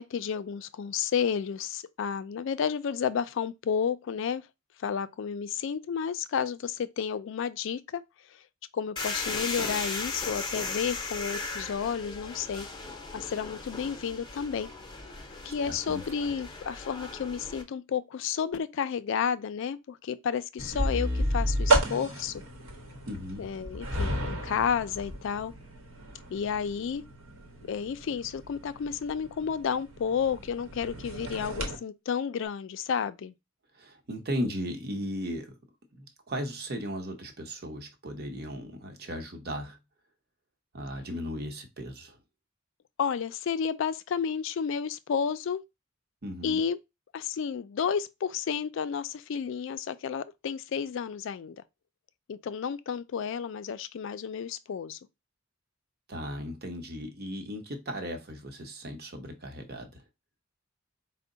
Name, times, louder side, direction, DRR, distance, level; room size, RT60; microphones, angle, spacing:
voice 1, 0.0-4.4 4.8-8.0 8.7-12.7 13.1-14.7 15.4-22.4 23.4-25.5 26.3-27.0 27.6-33.3 43.0-45.6 46.4-46.8 47.1-51.6 52.3-55.0, left 7 dB, 60° left, 0.3 m, -31 dB
sound 1, 9.0-17.6, left 3 dB, 20° left, 0.6 m, -37 dB
voice 2, 15.4-16.3 23.1-23.5 33.7-35.5 35.9-39.8 40.7-42.2 46.2-46.6 56.1-60.0, equal, 50° right, 0.8 m, -36 dB
sound 2, 20.6-31.8, right 1 dB, 80° right, 1.0 m, -32 dB
4.5 x 2.1 x 3.7 m
head